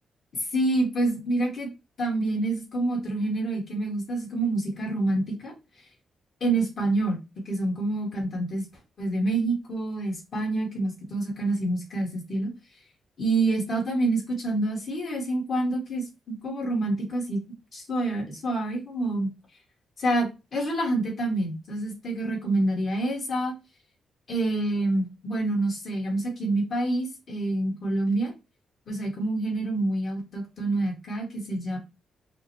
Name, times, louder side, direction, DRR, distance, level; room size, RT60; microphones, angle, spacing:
voice 1, 0.5-1.7 2.0-5.5 6.4-7.2 7.4-8.6 9.0-12.5 13.2-17.4 17.7-19.3 20.0-23.5 24.3-28.3 28.9-31.8, right 2 dB, 40° left, 0 dB, 1.5 m, -27 dB
5.8 x 2.2 x 3.0 m, 0.27 s
wide cardioid pair, 170°, 0 cm